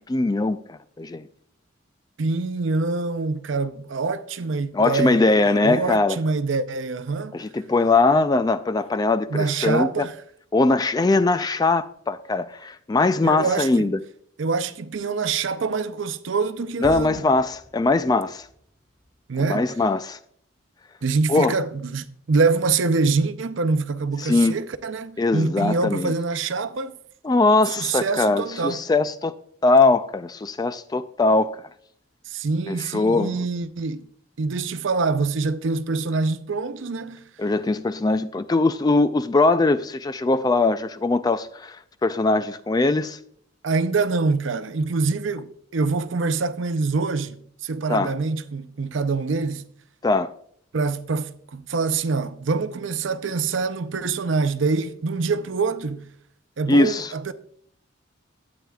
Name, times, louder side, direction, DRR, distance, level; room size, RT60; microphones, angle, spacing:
voice 1, 0.1-1.3 4.7-6.2 7.3-10.1 10.5-14.0 16.8-18.5 19.4-20.2 21.3-21.6 24.2-24.6 25.2-26.1 27.2-29.3 29.6-31.6 32.7-33.4 37.4-41.8 42.0-43.2 47.9-48.1 50.0-50.3 56.7-57.1, left 3 dB, 20° left, 0.3 m, -21 dB
voice 2, 2.2-7.4 9.3-10.2 13.2-13.9 14.4-17.2 19.3-19.7 21.0-26.9 27.7-28.8 32.3-34.0 34.4-37.2 43.6-49.7 50.7-56.1 56.6-57.3, right 4 dB, 65° right, 0.6 m, -25 dB
sound 1, 16.8-21.1, equal, ahead, 2.1 m, -46 dB
12.5 x 8.8 x 2.3 m
head